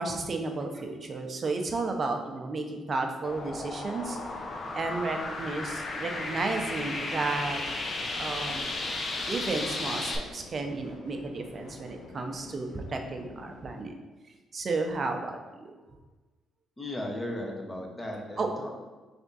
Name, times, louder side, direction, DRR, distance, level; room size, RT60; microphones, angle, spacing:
voice 1, 0.0-4.2 4.7-7.6 8.2-8.7 9.3-13.9 14.5-15.7 18.4-18.7, right 3 dB, 40° right, 4 dB, 0.6 m, -32 dB
sound 1, 3.2-10.2, left 2 dB, 40° left, 0.7 m, -34 dB
sound 2, 7.3-13.8, left 2 dB, 85° left, 0.9 m, -48 dB
voice 2, 16.8-18.7, left 1 dB, 20° left, 0 dB, 0.9 m, -36 dB
3.5 x 3.5 x 4.1 m, 1.2 s
cardioid pair, 90°, 0 cm